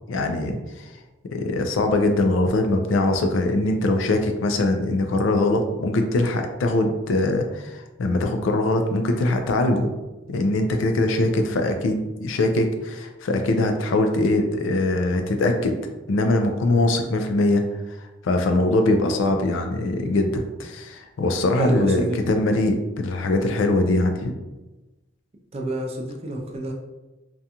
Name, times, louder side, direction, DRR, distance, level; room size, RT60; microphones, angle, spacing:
voice 1, 0.1-0.9 1.3-9.9 10.3-15.7 16.1-17.6 18.0-24.3, left 2 dB, 85° left, 6 dB, 0.4 m, -22 dB
voice 2, 21.6-22.2 25.5-26.7, right 2 dB, 30° right, 0 dB, 0.4 m, -28 dB
2.5 x 2.2 x 2.7 m, 1.1 s
head